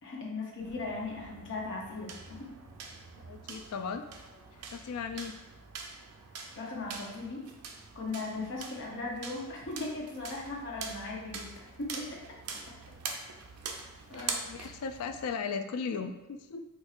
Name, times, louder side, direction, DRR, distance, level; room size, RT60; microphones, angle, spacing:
voice 1, 0.0-2.5 6.5-7.5 7.9-11.5 11.8-12.2 13.6-13.8 14.1-14.3, left 3 dB, 60° left, -3 dB, 0.8 m, -38 dB
sound 1, 0.6-15.4, right 5 dB, 80° right, 0.4 m, -44 dB
voice 2, 3.2-4.0 4.7-5.4 14.1-16.7, left 5 dB, 80° left, 7 dB, 0.3 m, -37 dB
4.2 x 2.6 x 2.4 m, 1.1 s
head